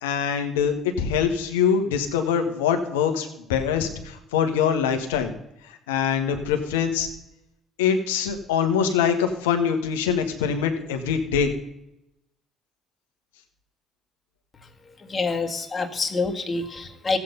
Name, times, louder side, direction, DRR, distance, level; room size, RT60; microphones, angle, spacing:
voice 1, 0.0-5.3 5.7-7.1 7.8-11.5, left 7 dB, 90° left, 6 dB, 1.5 m, -24 dB
voice 2, 15.1-17.2, left 3 dB, 35° left, 5 dB, 1.9 m, -26 dB
15.0 x 8.6 x 5.4 m, 0.85 s
hypercardioid pair, 55°, 0 cm